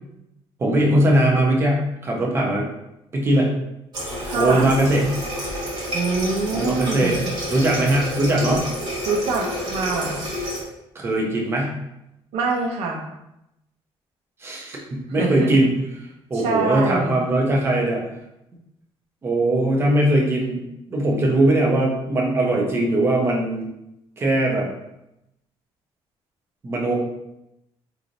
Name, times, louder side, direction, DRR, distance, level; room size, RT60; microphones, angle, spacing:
voice 1, 0.6-2.7 3.1-3.5 4.4-5.1 6.5-7.2 7.5-8.6 10.9-11.7 14.4-15.7 16.3-18.0 19.2-20.6 20.9-23.6 24.2-24.7 26.6-27.0, right 1 dB, 25° right, -1 dB, 0.7 m, -20 dB
Water tap faucet, 3.9-10.6, equal, 45° right, 1.2 m, -29 dB
voice 2, 4.2-4.7 5.9-7.3 9.1-10.2 12.3-13.0 15.2-15.5 16.3-17.2, right 3 dB, 90° right, 2 dB, 0.7 m, -24 dB
3.1 x 2.6 x 3.9 m, 0.86 s
cardioid pair, 160°, 10 cm